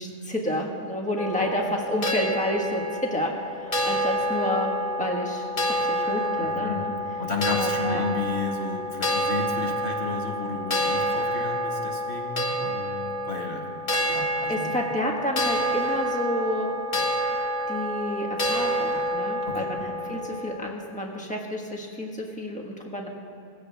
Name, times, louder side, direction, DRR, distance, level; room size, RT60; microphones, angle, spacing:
voice 1, 0.0-2.8 3.1-4.7 5.0-6.9 7.5-8.0 14.5-16.7 17.7-23.1, left 1 dB, 5° left, 0 dB, 1.4 m, -30 dB
sound 1, 1.2-20.6, equal, 50° left, 1.6 m, -28 dB
voice 2, 6.4-6.9 7.2-13.7 14.1-14.8 19.4-19.7 20.0-20.2, left 4 dB, 65° left, 1 dB, 1.8 m, -33 dB
18.0 x 15.5 x 3.4 m, 2.6 s
omnidirectional pair, 1.2 m